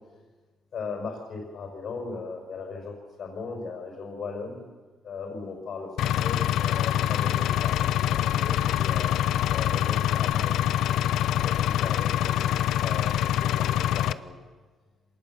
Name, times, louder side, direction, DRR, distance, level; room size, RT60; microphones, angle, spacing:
voice 1, 0.7-4.6 5.0-9.1 9.5-10.6 11.4-12.5 12.8-13.1 13.4-14.4, left 4 dB, 50° left, 0 dB, 5.4 m, -38 dB
Engine, 6.0-14.1, left 12 dB, 80° left, 0.6 m, -25 dB
26.0 x 19.0 x 7.3 m, 1.3 s
cardioid pair, 160°, 0 cm